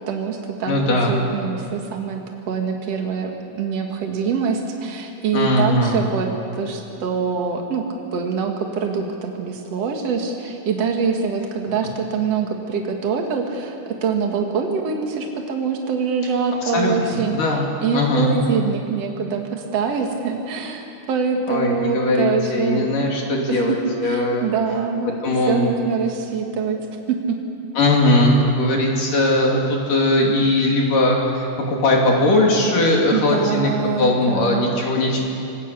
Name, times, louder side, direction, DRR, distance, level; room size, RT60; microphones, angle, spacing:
voice 1, 0.0-2.2 2.5-7.8 8.1-17.4 17.8-23.1 23.5-23.8 24.0-25.1 25.5-26.8 27.1-27.4 27.9-28.0 33.1-34.7, right 5 dB, 75° right, 2 dB, 1.4 m, -24 dB
voice 2, 0.7-1.2 5.3-6.0 16.7-17.7 17.9-18.4 21.5-24.5 25.1-25.7 27.8-33.7 34.0-35.2, left 1 dB, 45° left, -1 dB, 3.8 m, -19 dB
26.5 x 20.5 x 8.4 m, 2.7 s
omnidirectional pair, 5.8 m